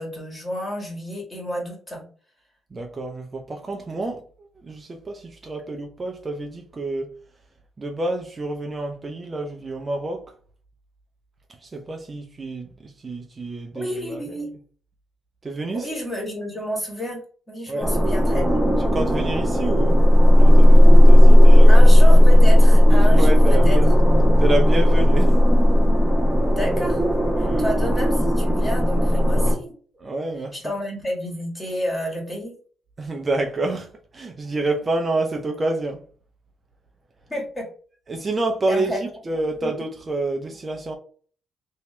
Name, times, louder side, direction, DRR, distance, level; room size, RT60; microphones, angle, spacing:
voice 1, 0.0-2.0 13.7-14.5 15.7-17.2 17.5-18.5 21.7-23.8 26.5-27.0 27.4-29.7 30.5-32.5 37.3-37.7 38.7-39.1 39.6-39.7, equal, 20° left, 1.7 m, -30 dB
voice 2, 2.7-7.2 7.8-10.3 11.6-14.4 15.4-15.9 17.7-17.9 18.9-20.0 20.3-21.8 23.1-24.0 24.4-25.4 27.4-27.6 30.0-30.7 33.0-36.1 38.1-41.0, right 2 dB, 30° right, 0.6 m, -28 dB
sound 1, 17.8-29.5, left 1 dB, ahead, 1.1 m, -13 dB
2.9 x 2.8 x 3.2 m
cardioid pair, 90°, 0 cm